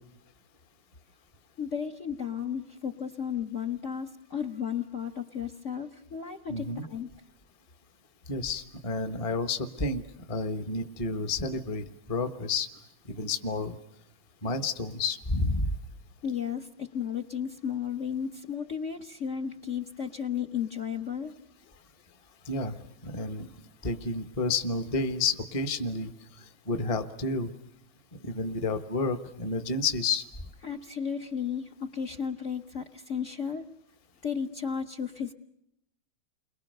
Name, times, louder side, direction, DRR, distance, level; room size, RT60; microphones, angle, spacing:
voice 1, 1.6-7.1 16.2-21.3 30.6-33.6 34.2-35.3, left 7 dB, 45° left, 7 dB, 1.2 m, -34 dB
voice 2, 6.5-6.8 8.3-10.0 10.3-12.7 13.1-13.8 14.4-15.7 22.5-22.8 23.0-23.5 23.8-26.1 26.7-27.5 28.2-30.2, left 3 dB, 20° left, 8 dB, 1.0 m, -30 dB
30.0 x 23.0 x 6.6 m, 0.79 s
omnidirectional pair, 2.3 m